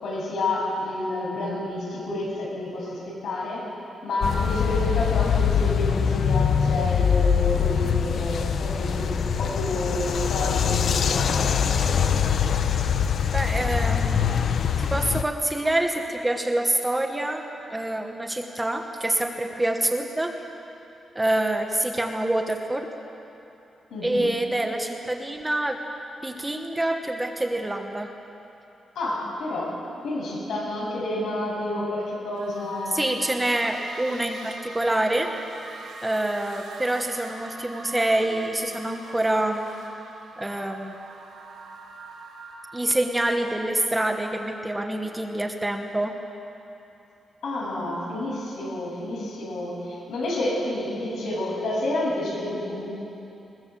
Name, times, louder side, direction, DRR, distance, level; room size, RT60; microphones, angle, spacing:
voice 1, 0.0-3.7 4.0-11.5 23.9-24.3 29.0-29.7 30.0-33.1 47.4-52.9, left 1 dB, 80° left, -4 dB, 7.5 m, -29 dB
sound 1, 4.2-15.2, left 7 dB, 55° left, 0.7 m, -23 dB
voice 2, 13.3-14.3 14.8-20.3 21.1-22.9 24.0-25.8 26.2-28.1 32.9-35.3 36.0-39.7 40.4-41.0 42.7-46.2, right 1 dB, 10° right, 3 dB, 1.2 m, -26 dB
sound 2, 32.4-43.1, right 3 dB, 85° right, 3.4 m, -44 dB
21.5 x 20.5 x 7.5 m, 2.9 s
wide cardioid pair, 175°, 0 cm